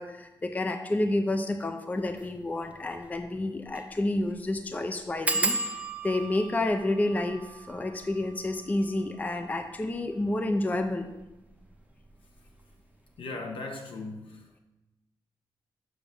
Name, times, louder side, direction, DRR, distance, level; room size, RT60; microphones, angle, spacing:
voice 1, 0.0-5.6 6.0-11.1, left 2 dB, 20° left, 6 dB, 0.6 m, -29 dB
sound 1, 2.1-2.3 2.7-2.8 3.0-3.1 3.7-3.9 4.2-4.3 5.3-10.5 11.2-11.7 12.0-12.4 12.6-12.7, right 3 dB, 15° right, 0.8 m, -35 dB
voice 2, 13.2-14.6, left 3 dB, 80° left, 1 dB, 1.6 m, -38 dB
7.2 x 6.0 x 6.9 m, 1.0 s
wide cardioid pair, 150°, 9 cm